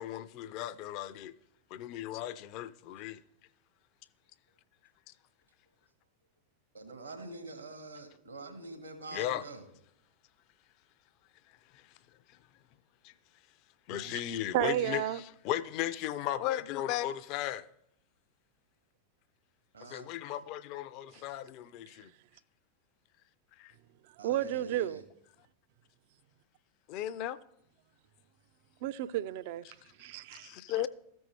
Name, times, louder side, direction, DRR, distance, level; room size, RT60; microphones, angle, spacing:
voice 1, 0.0-1.3 1.7-3.2 9.1-9.4 11.7-11.8 13.0-13.1 13.9-17.7 19.9-22.1 23.6-23.7 26.9-27.4 30.3-30.9, left 12 dB, 40° left, 0.4 m, -36 dB
voice 2, 6.7-9.6 19.7-20.1 24.2-25.0, right 2 dB, 75° right, 1.4 m, -45 dB
voice 3, 14.5-15.2 24.2-25.0 28.8-29.6 30.0-30.5, right 13 dB, 50° right, 0.3 m, -32 dB
14.0 x 5.3 x 3.2 m
figure-of-eight pair, 90°, 0 cm